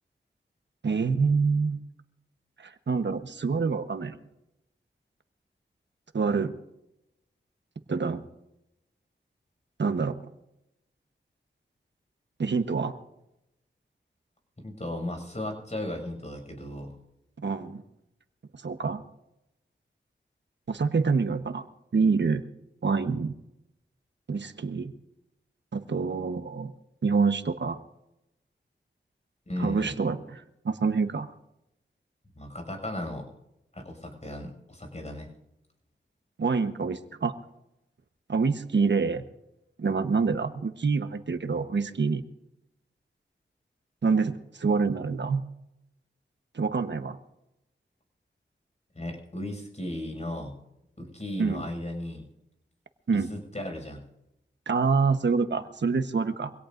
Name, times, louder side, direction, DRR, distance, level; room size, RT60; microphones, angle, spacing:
voice 1, 0.8-1.8 2.6-4.2 6.1-6.5 7.9-8.2 9.8-10.2 12.4-12.9 17.4-17.8 18.5-19.0 20.7-21.6 21.9-22.5 22.8-23.3 24.3-24.9 25.7-26.7 27.0-27.8 29.6-31.3 36.4-37.3 38.3-39.2 39.8-42.2 44.0-45.4 46.5-47.2 51.4-51.6 53.1-53.3 54.7-56.5, right 4 dB, 65° right, 9 dB, 1.1 m, -26 dB
voice 2, 14.6-17.0 29.5-30.0 32.4-33.3 33.7-35.3 48.9-50.6 51.0-52.3 53.3-54.1, left 1 dB, 35° left, 3 dB, 6.2 m, -36 dB
25.0 x 17.5 x 2.6 m, 0.87 s
cardioid pair, 45°, 20 cm